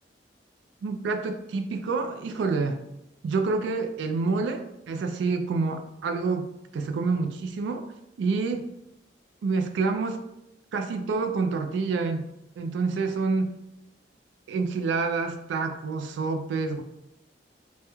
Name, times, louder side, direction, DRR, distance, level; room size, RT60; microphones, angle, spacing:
voice 1, 0.8-2.8 3.2-7.9 8.2-8.7 9.4-10.2 10.7-12.3 12.6-13.5 14.5-16.8, right 4 dB, 75° right, 7 dB, 0.3 m, -28 dB
2.9 x 2.1 x 2.3 m, 0.85 s
head